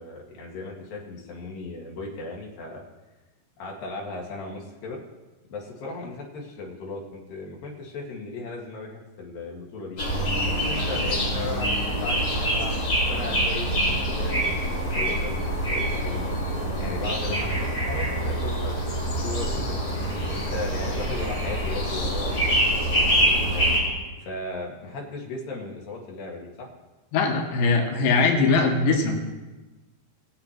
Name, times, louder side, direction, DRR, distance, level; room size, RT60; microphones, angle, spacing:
voice 1, 0.0-2.8 3.6-5.0 5.5-10.0 10.5-16.3 16.8-19.8 20.3-23.7 24.2-26.7, left 2 dB, 60° left, -2 dB, 3.5 m, -36 dB
sound 1, 10.0-23.8, right 1 dB, 30° left, 5.7 m, -25 dB
voice 2, 27.1-29.2, left 4 dB, 90° left, 1 dB, 3.5 m, -21 dB
20.0 x 7.6 x 4.5 m, 1.1 s
omnidirectional pair, 4.8 m